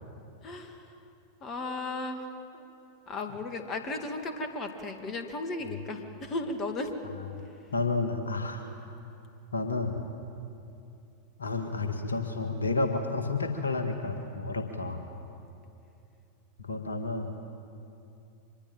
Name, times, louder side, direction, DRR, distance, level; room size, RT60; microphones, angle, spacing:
voice 1, 0.4-1.0 1.4-2.7 3.1-6.9, left 2 dB, 30° left, 6 dB, 2.4 m, -35 dB
voice 2, 7.7-8.6 9.5-10.0 11.4-15.0 16.6-17.4, left 3 dB, 75° left, 5 dB, 1.9 m, -30 dB
25.0 x 21.0 x 9.0 m, 2.7 s
figure-of-eight pair, 90°, 0 cm